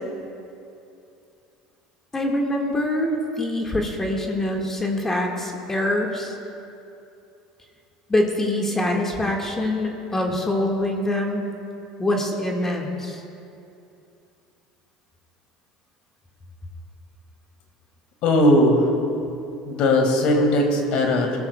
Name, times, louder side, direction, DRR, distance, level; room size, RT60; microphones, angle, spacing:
voice 1, 2.1-6.3 8.1-11.5 12.0-13.2, left 1 dB, 20° left, 1 dB, 1.7 m, -24 dB
voice 2, 18.2-18.9 19.6-21.3, left 1 dB, 60° left, 3 dB, 2.0 m, -18 dB
19.0 x 14.5 x 2.3 m, 2.7 s
hypercardioid pair, 85°, 2 cm